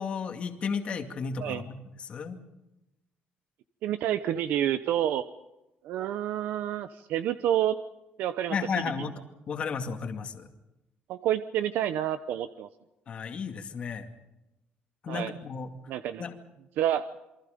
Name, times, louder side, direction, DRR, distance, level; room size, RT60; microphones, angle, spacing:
voice 1, 0.0-1.8 2.0-2.4 8.5-9.1 9.5-10.5 13.1-14.1 15.0-15.7 16.2-16.3, left 5 dB, 35° left, 5 dB, 2.3 m, -33 dB
voice 2, 3.8-5.2 5.8-7.8 8.2-8.5 11.1-12.7 15.1-15.3 15.9-16.2 16.8-17.1, right 11 dB, 65° right, 11 dB, 0.9 m, -28 dB
28.5 x 23.5 x 5.2 m, 0.97 s
cardioid pair, 165°, 3 cm